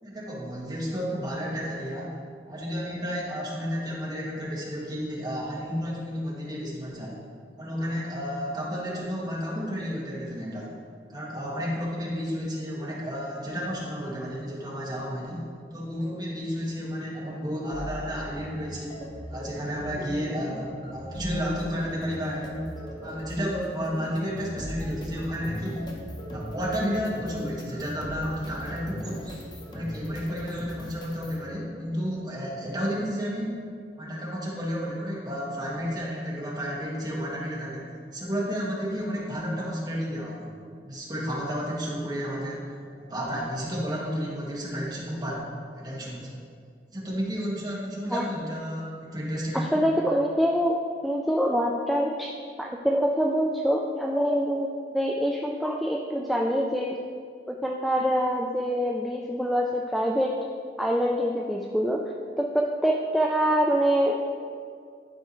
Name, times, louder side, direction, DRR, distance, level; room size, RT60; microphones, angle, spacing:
voice 1, 0.0-2.1 2.5-7.2 7.6-10.7 11.1-22.7 23.0-25.8 26.3-29.3 29.7-33.6 34.0-40.5 40.8-42.6 43.1-46.3 46.9-49.8, equal, 25° right, -5 dB, 1.6 m, -32 dB
sound 1, 17.7-31.4, equal, 25° left, 0.8 m, -39 dB
voice 2, 49.7-50.7 51.0-52.3 52.6-57.0 57.5-60.3 60.8-62.0 62.4-64.2, equal, ahead, -1 dB, 0.3 m, -25 dB
11.5 x 4.6 x 3.0 m, 2.2 s
head